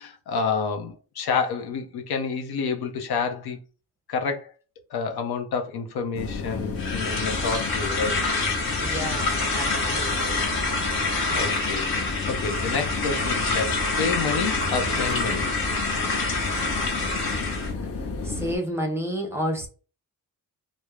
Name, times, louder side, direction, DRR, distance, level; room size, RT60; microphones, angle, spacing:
voice 1, 0.0-3.6 4.1-4.5 4.9-8.2 11.3-15.5, left 5 dB, 85° left, 0.6 m, -29 dB
sound 1, 6.1-18.6, left 4 dB, 40° left, 0.5 m, -32 dB
sound 2, 6.8-17.7, left 3 dB, 65° left, 1.1 m, -27 dB
voice 2, 8.8-10.4 18.2-19.7, equal, 5° right, 0.6 m, -30 dB
3.1 x 2.0 x 2.3 m
wide cardioid pair, 130°, 38 cm